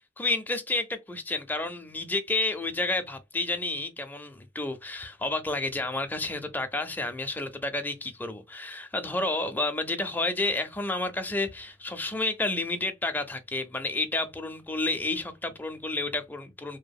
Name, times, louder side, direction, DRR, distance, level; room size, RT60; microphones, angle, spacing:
voice 1, 0.2-16.8, left 2 dB, 10° left, 0.4 m, -30 dB
2.8 x 2.3 x 2.3 m
head